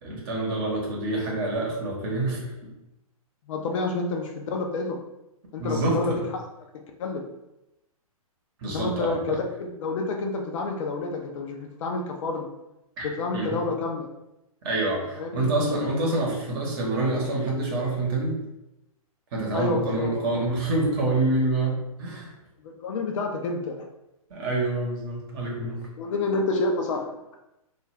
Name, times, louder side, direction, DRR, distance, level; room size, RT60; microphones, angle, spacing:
voice 1, 0.0-2.7 5.6-6.2 8.6-9.4 13.0-13.1 13.3-13.6 14.6-18.4 19.3-22.3 24.3-25.8, right 2 dB, 40° right, -1 dB, 0.9 m, -27 dB
voice 2, 3.5-5.0 5.5-6.2 6.7-7.3 8.7-12.5 13.0-14.1 15.2-15.3 19.5-20.3 22.6-23.9 26.0-27.1, left 3 dB, 55° left, 2 dB, 0.4 m, -29 dB
2.3 x 2.3 x 3.1 m, 0.91 s
hypercardioid pair, 125°, 19 cm